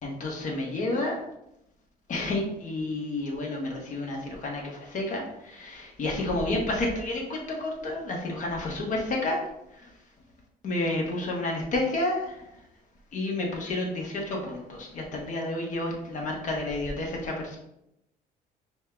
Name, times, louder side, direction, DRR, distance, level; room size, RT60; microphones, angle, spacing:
voice 1, 0.0-1.2 2.1-9.4 10.6-12.4 13.1-17.6, left 2 dB, 50° left, -1 dB, 1.3 m, -30 dB
5.1 x 2.3 x 3.8 m, 0.82 s
cardioid pair, 110°, 17 cm